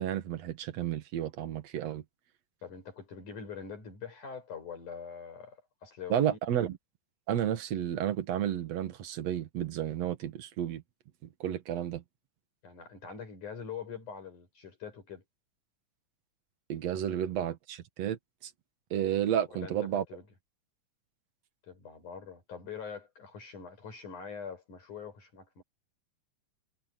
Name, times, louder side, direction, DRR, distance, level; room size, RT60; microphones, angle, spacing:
voice 1, 0.0-2.0 6.1-6.8 7.3-10.8 11.4-12.0 16.7-18.5 18.9-20.0, right 10 dB, 60° right, 2.5 m, -32 dB
voice 2, 2.6-6.4 12.6-15.2 19.5-20.3 21.6-25.6, left 6 dB, 70° left, 7.6 m, -44 dB
omnidirectional pair, 3.7 m